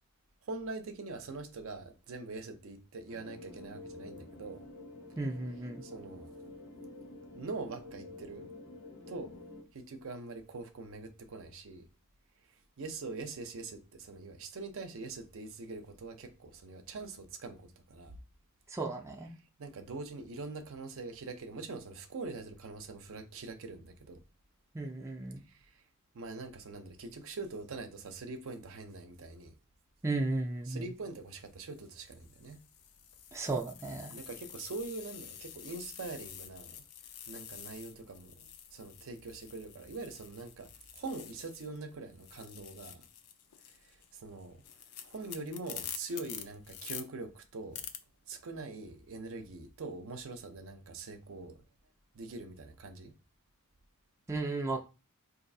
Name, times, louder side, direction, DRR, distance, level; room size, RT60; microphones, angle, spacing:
voice 1, 0.4-4.6 5.8-6.3 7.4-8.5 9.1-9.4 9.7-11.9 12.8-18.1 19.6-24.2 25.5-25.8 26.1-29.5 30.7-32.6 34.1-36.8 37.3-43.1 43.7-44.6 45.0-47.8 48.3-51.6 52.1-53.1, right 3 dB, 65° right, 0.5 m, -43 dB
sound 1, 3.1-9.6, left 2 dB, 75° left, 1.0 m, -49 dB
voice 2, 5.2-5.8 18.7-19.3 24.7-25.4 30.0-30.9 33.3-34.1 54.3-54.8, right 2 dB, 15° right, 0.4 m, -34 dB
sound 2, 30.7-30.9 31.7-41.8 42.1-47.0 47.7-48.0, left 9 dB, 90° left, 0.5 m, -48 dB
3.9 x 2.6 x 2.6 m
head